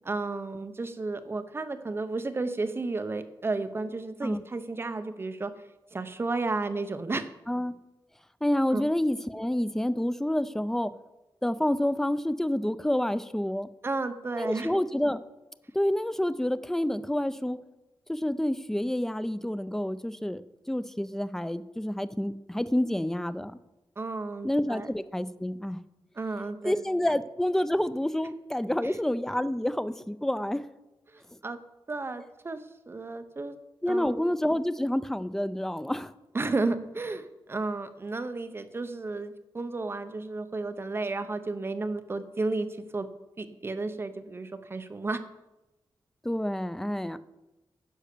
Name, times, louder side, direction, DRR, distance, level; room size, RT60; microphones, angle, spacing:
voice 1, 0.1-5.5 5.9-7.3 8.7-8.8 13.8-14.7 24.0-24.9 26.1-26.8 28.8-29.0 31.1-31.6 31.9-33.6 33.9-34.3 36.3-43.1 43.4-45.2, right 3 dB, 30° right, 10 dB, 0.7 m, -33 dB
voice 2, 8.4-10.9 11.4-13.7 14.4-15.2 15.7-17.6 18.1-20.4 20.7-23.5 24.4-25.8 26.6-30.6 33.8-36.1 46.2-47.2, left 1 dB, 5° left, 14 dB, 0.4 m, -28 dB
10.0 x 5.6 x 6.6 m, 1.0 s
wide cardioid pair, 150°, 9 cm